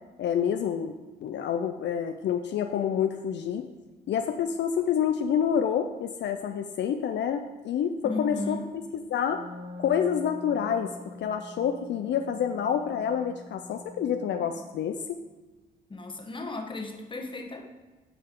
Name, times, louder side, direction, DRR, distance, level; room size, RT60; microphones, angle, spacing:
voice 1, 0.2-0.9 1.2-3.6 4.1-8.6 9.1-9.4 9.8-15.2, left 8 dB, 60° left, 6 dB, 0.5 m, -28 dB
voice 2, 8.0-8.7 15.9-17.7, left 2 dB, 25° left, 3 dB, 1.2 m, -35 dB
Wind instrument woodwind instrument, 9.2-14.9, left 1 dB, 30° right, 1.5 m, -45 dB
10.0 x 5.4 x 3.8 m, 1.2 s
cardioid pair, 90°, 20 cm